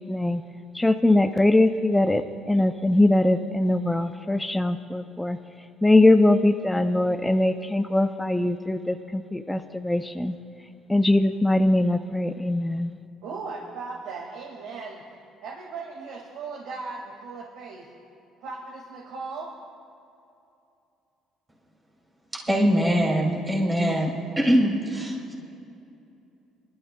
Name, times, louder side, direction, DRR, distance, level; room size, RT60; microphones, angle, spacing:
voice 1, 0.1-0.4 0.7-5.4 5.8-10.3 10.9-12.9, left 1 dB, 5° left, 8 dB, 0.3 m, -21 dB
voice 2, 13.2-15.0 15.4-17.9 18.4-19.5, right 4 dB, 75° right, -3 dB, 1.7 m, -37 dB
voice 3, 22.3-25.3, equal, 10° right, -3 dB, 2.4 m, -23 dB
27.0 x 12.0 x 2.2 m, 2.7 s
cardioid pair, 155°, 0 cm